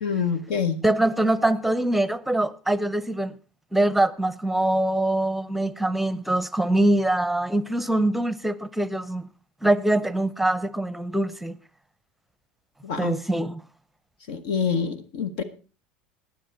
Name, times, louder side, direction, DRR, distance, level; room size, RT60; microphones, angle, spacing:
voice 1, 0.0-0.8 12.8-13.2 14.3-15.4, left 6 dB, 70° left, 1.1 m, -26 dB
voice 2, 0.8-3.3 3.7-9.3 9.6-11.5 13.0-13.6, right 1 dB, 5° right, 0.7 m, -23 dB
20.5 x 7.3 x 4.4 m
hypercardioid pair, 85°, 4 cm